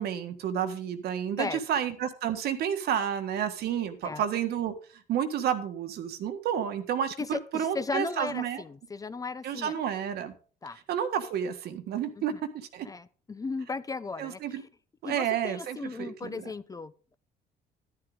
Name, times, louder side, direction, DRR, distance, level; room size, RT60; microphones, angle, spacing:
voice 1, 0.0-4.7 5.1-8.6 9.4-10.3 10.9-12.9 14.2-14.6 15.0-16.3, right 9 dB, 70° right, 8 dB, 1.6 m, -30 dB
voice 2, 7.2-9.7 10.6-10.8 12.2-12.4 12.8-14.7 15.0-17.1, left 4 dB, 20° left, 14 dB, 0.6 m, -36 dB
11.0 x 10.5 x 3.7 m, 0.38 s
cardioid pair, 110°, 17 cm